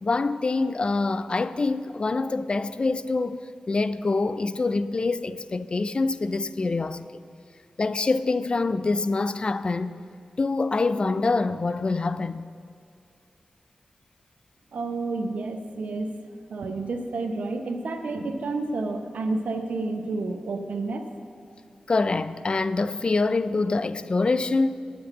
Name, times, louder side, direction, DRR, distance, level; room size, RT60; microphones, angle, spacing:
voice 1, 0.0-3.4 3.7-7.2 7.8-10.0 10.4-12.4 21.9-24.8, left 3 dB, 45° left, 0.4 m, -25 dB
voice 2, 14.7-16.1 16.5-21.1, right 3 dB, 85° right, 0.9 m, -30 dB
9.7 x 7.9 x 8.0 m
wide cardioid pair, 70°, 2 cm